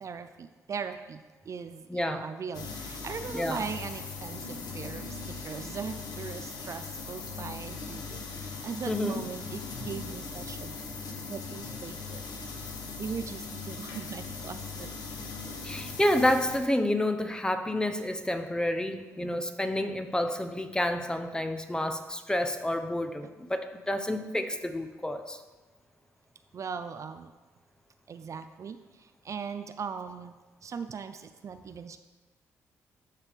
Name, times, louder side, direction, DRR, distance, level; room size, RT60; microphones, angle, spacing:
voice 1, 0.0-10.8 11.3-12.2 13.0-14.9 19.2-19.4 23.2-23.3 26.5-27.3 28.1-32.0, right 6 dB, 50° right, 9 dB, 0.5 m, -39 dB
voice 2, 1.9-2.2 3.3-3.6 8.9-9.2 15.6-25.4, left 1 dB, 10° left, 7 dB, 0.9 m, -29 dB
sound 1, 2.5-16.6, left 4 dB, 75° left, 1.2 m, -39 dB
13.5 x 4.9 x 3.5 m, 1.2 s
supercardioid pair, 55°, 7 cm